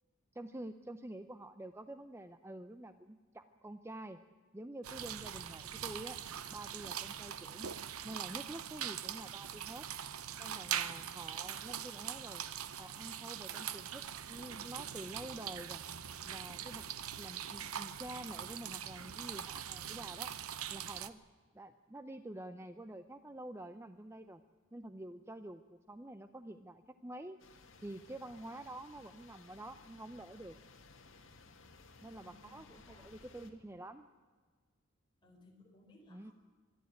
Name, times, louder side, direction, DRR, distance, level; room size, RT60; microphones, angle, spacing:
voice 1, 0.3-4.2 4.5-6.2 6.5-7.7 8.0-9.9 10.4-12.4 12.8-15.8 16.2-16.9 17.2-20.3 20.7-21.2 21.5-24.4 24.7-25.6 25.9-27.4 27.8-30.6 32.0-34.1 36.1-36.3, right 1 dB, 10° right, 10 dB, 0.5 m, -48 dB
sound 1, 4.8-21.1, right 9 dB, 90° right, 0.9 m, -42 dB
sound 2, 27.4-33.5, left 3 dB, 60° left, 2.2 m, -59 dB
voice 2, 32.2-33.1 35.2-36.3, left 2 dB, 20° left, 0 dB, 4.2 m, -62 dB
24.5 x 12.0 x 9.4 m, 1.5 s
head